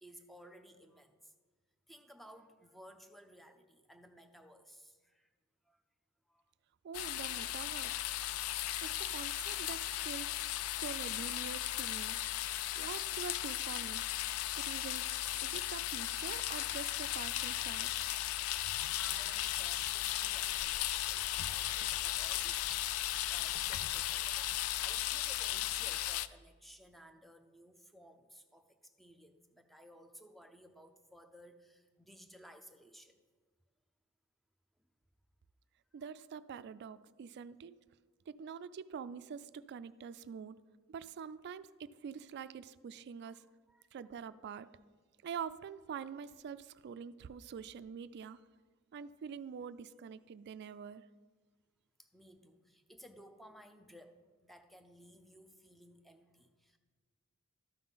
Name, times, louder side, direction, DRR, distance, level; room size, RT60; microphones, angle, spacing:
voice 1, 0.0-1.3 1.9-5.3 5.6-5.8 6.3-6.4 8.9-9.1 14.3-14.6 18.4-33.2 34.8-34.9 36.0-36.1 43.2-43.3 43.7-43.9 52.0-56.8, equal, ahead, 7 dB, 0.5 m, -58 dB
voice 2, 6.8-8.0 8.8-12.2 12.8-14.0 14.5-15.1 15.4-17.9 35.9-37.7 38.3-40.6 40.9-43.4 43.9-44.7 45.2-48.4 48.9-51.1, right 7 dB, 55° right, 15 dB, 0.3 m, -45 dB
sound 1, 6.9-26.3, left 13 dB, 85° left, 0.3 m, -36 dB
12.5 x 5.6 x 4.0 m, 1.4 s
head